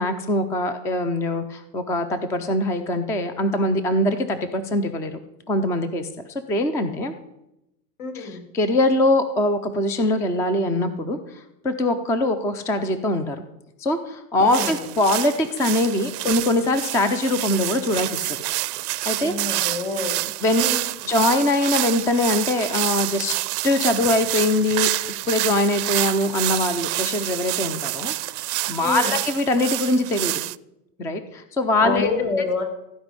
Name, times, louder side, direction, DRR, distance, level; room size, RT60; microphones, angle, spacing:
voice 1, 0.0-5.2 5.5-7.1 8.1-13.4 13.8-18.4 19.1-19.7 20.4-20.6 21.0-23.3 23.6-24.9 25.3-28.1 28.7-30.3 31.0-32.1, left 1 dB, 5° left, 10 dB, 0.4 m, -22 dB
voice 2, 8.0-8.4 14.4-14.8 19.2-20.2 20.5-20.8 28.8-29.1 31.8-32.6, left 3 dB, 65° left, 4 dB, 4.1 m, -27 dB
sound 1, 14.5-30.5, right 18 dB, 75° right, 0.6 m, -27 dB
15.5 x 5.2 x 9.7 m, 0.87 s
supercardioid pair, 130°, 47 cm